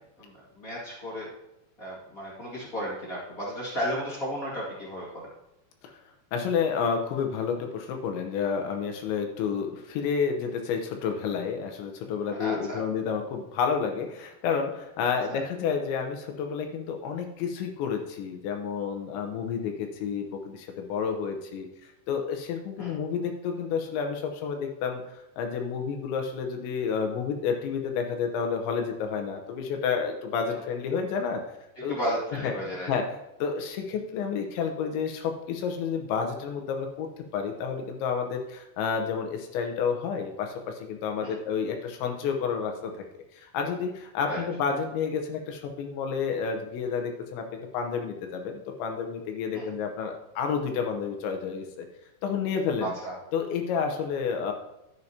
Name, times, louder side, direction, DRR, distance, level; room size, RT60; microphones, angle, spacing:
voice 1, 0.2-1.3 1.8-5.3 12.4-12.8 15.3-15.4 22.8-22.9 31.9-32.9 41.2-41.3 44.3-44.4 49.5-49.7 52.8-53.1, equal, 50° left, -5 dB, 1.0 m, -33 dB
voice 2, 6.3-31.4 31.8-32.0 32.4-32.5 32.9-33.0 33.4-37.1 37.3-42.9 43.3-47.5 47.7-51.9 52.2-52.9 53.3-54.5, left 6 dB, 75° left, 3 dB, 3.0 m, -30 dB
11.5 x 11.0 x 2.8 m, 0.90 s
omnidirectional pair, 5.5 m